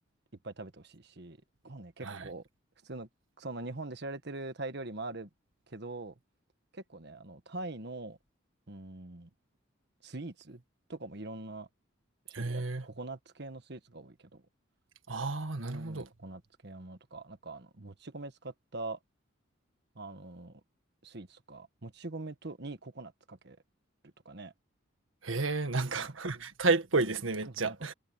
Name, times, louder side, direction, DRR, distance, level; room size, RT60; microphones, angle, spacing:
voice 1, 0.4-1.4 1.6-2.4 2.8-3.1 3.4-5.3 5.7-6.1 6.7-8.2 8.7-9.3 10.0-10.6 10.9-11.7 12.3-14.4 15.6-19.0 19.9-20.6 21.0-23.6 24.0-24.5 25.7-26.1 27.5-27.8, right 2 dB, 55° right, 1.4 m, -43 dB
voice 2, 12.3-12.8 15.1-16.1 25.2-27.9, right 3 dB, 75° right, 1.7 m, -31 dB
head